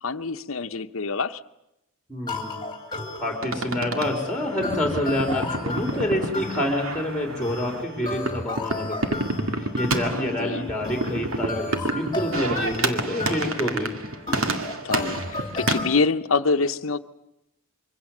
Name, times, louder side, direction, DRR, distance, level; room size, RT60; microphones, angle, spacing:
voice 1, 0.0-1.4 10.1-10.7 14.8-17.0, left 4 dB, 70° left, 10 dB, 0.9 m, -26 dB
voice 2, 2.1-2.6 3.2-9.2 9.6-13.9, left 1 dB, 5° left, 3 dB, 3.8 m, -27 dB
sound 1, 2.3-16.0, left 3 dB, 20° left, 2.7 m, -34 dB
sound 2, 3.4-15.8, right 2 dB, 90° right, 2.2 m, -30 dB
26.0 x 24.0 x 7.4 m, 0.87 s
head